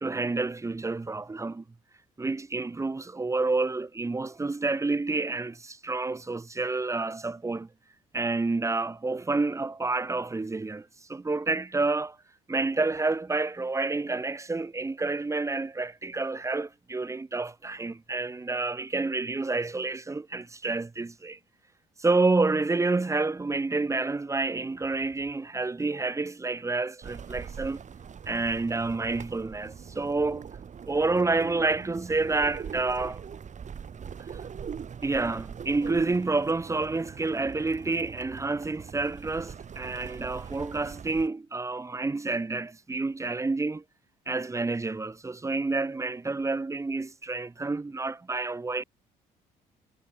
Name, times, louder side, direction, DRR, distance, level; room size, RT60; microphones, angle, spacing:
voice 1, 0.0-1.6 2.2-7.7 8.1-12.2 12.5-21.4 22.0-27.8 28.3-30.5 30.9-33.2 35.0-43.8 44.3-48.8, right 3 dB, 15° right, 0.8 m, -29 dB
sound 1, 27.0-41.3, right 7 dB, 45° right, 2.0 m, -42 dB
supercardioid pair, 65°, 18 cm